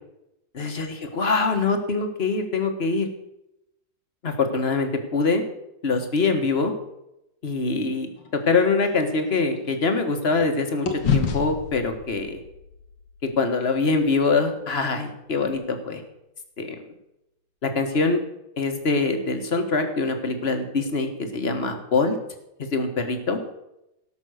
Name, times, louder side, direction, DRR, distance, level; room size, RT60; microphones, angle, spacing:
voice 1, 0.5-3.1 4.2-5.4 5.8-6.7 7.4-8.1 8.5-12.4 13.4-16.0 16.6-16.8 17.6-18.2 18.6-22.2 22.6-23.4, left 4 dB, 35° left, 6 dB, 1.7 m, -24 dB
sound 1, 8.2-10.5 10.8-15.1, left 6 dB, 90° left, 2.2 m, -31 dB
18.0 x 6.2 x 6.5 m, 0.87 s
omnidirectional pair, 2.0 m